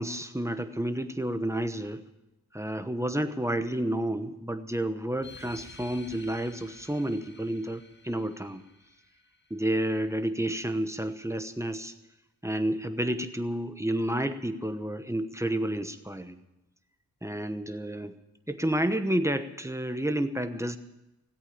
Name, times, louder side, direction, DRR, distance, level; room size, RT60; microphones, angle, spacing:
voice 1, 0.0-2.0 2.5-8.6 9.5-11.9 12.4-16.4 17.2-18.1 18.5-20.8, right 1 dB, 5° right, 9 dB, 1.0 m, -30 dB
sound 1, 5.2-10.2, left 3 dB, 25° left, 1.5 m, -52 dB
17.5 x 8.3 x 9.9 m, 0.96 s
wide cardioid pair, 85°, 41 cm